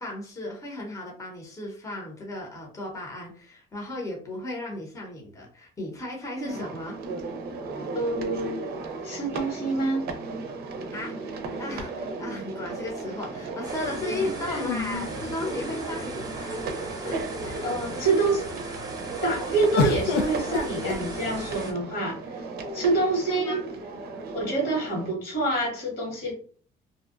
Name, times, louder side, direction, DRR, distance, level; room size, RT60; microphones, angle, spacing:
voice 1, 0.0-7.0 10.9-16.7 17.0-17.7 23.3-23.6, left 2 dB, 20° left, -1 dB, 0.8 m, -35 dB
sound 1, 6.5-25.1, right 3 dB, 65° right, 0.5 m, -35 dB
voice 2, 7.9-8.7 9.0-10.0 14.1-14.6 17.6-18.4 18.7-18.8 19.2-22.4 22.7-23.7 24.3-26.3, right 2 dB, 75° left, -1 dB, 1.5 m, -27 dB
sound 2, 11.4-12.5 14.5-16.1 16.8-16.9 17.2-17.8 19.8-21.6 22.6-23.3, left 4 dB, 90° left, 0.4 m, -32 dB
sound 3, 13.6-21.7, right 2 dB, 20° right, 0.7 m, -40 dB
2.6 x 2.1 x 2.4 m, 0.43 s
cardioid pair, 110°, 17 cm